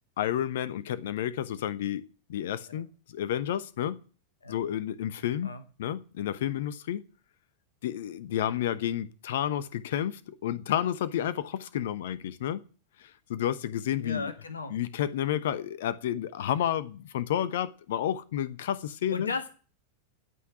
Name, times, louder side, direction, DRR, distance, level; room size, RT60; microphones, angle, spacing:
voice 1, 0.2-4.0 4.5-5.5 5.8-7.0 7.8-12.6 13.0-14.3 14.7-19.3, left 10 dB, 55° left, 1.0 m, -31 dB
voice 2, 14.0-14.7 19.1-19.5, left 4 dB, 75° left, 1.8 m, -36 dB
17.0 x 6.0 x 9.8 m
figure-of-eight pair, 90°, 0 cm